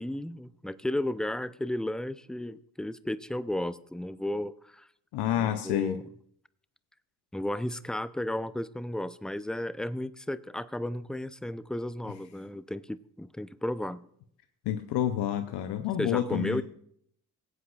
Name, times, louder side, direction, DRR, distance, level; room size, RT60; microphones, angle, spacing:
voice 1, 0.0-4.9 5.3-6.0 7.3-14.1 16.0-16.6, left 1 dB, ahead, 15 dB, 0.5 m, -34 dB
voice 2, 5.1-6.0 14.7-16.6, left 11 dB, 85° left, 8 dB, 0.7 m, -29 dB
19.5 x 8.2 x 2.4 m, 0.67 s
supercardioid pair, 55°, 40 cm